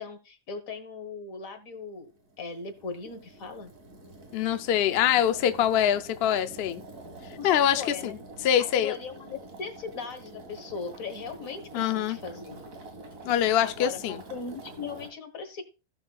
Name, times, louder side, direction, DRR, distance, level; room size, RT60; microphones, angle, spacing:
voice 1, 0.0-2.1 2.4-3.7 7.4-8.3 8.6-12.6 13.6-15.6, left 5 dB, 90° left, 1.8 m, -39 dB
sound 1, 2.0-15.1, right 2 dB, 90° right, 2.3 m, -46 dB
voice 2, 4.3-6.8 7.4-8.1 8.4-8.9 11.7-12.2 13.2-14.2, left 10 dB, 60° left, 0.8 m, -24 dB
17.0 x 6.4 x 2.3 m
omnidirectional pair, 1.4 m